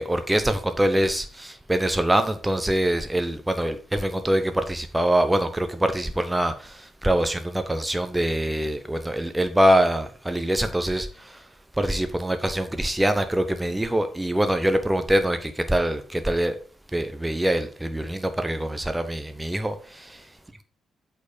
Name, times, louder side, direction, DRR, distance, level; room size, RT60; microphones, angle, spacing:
voice 1, 0.0-11.4 11.8-16.6 16.9-20.2, right 1 dB, 10° right, 1.0 m, -24 dB
8.3 x 4.6 x 5.1 m
figure-of-eight pair, 45°, 0 cm